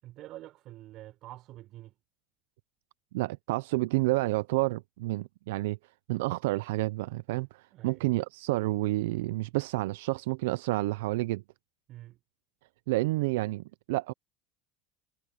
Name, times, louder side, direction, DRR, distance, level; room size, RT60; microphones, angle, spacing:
voice 1, 0.0-1.9 7.7-8.0 11.9-12.2, right 15 dB, 55° right, 4.2 m, -47 dB
voice 2, 3.1-5.8 6.1-11.4 12.9-14.1, right 20 dB, 80° right, 0.5 m, -29 dB
supercardioid pair, 100°, 0 cm